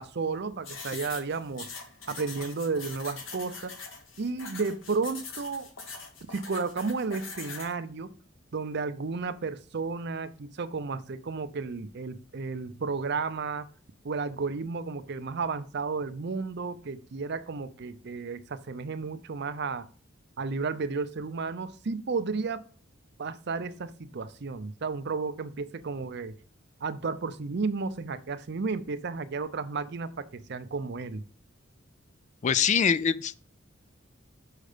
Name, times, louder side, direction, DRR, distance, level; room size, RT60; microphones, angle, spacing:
voice 1, 0.0-1.7 2.1-3.7 4.2-5.7 6.3-8.1 8.5-13.7 14.0-19.9 20.4-22.6 23.2-26.3 26.8-31.2, right 4 dB, 55° right, 0.6 m, -33 dB
sound 1, 0.6-7.7, left 4 dB, 75° left, 1.6 m, -42 dB
voice 2, 32.4-33.3, left 7 dB, 35° left, 0.3 m, -24 dB
6.5 x 4.7 x 5.0 m
head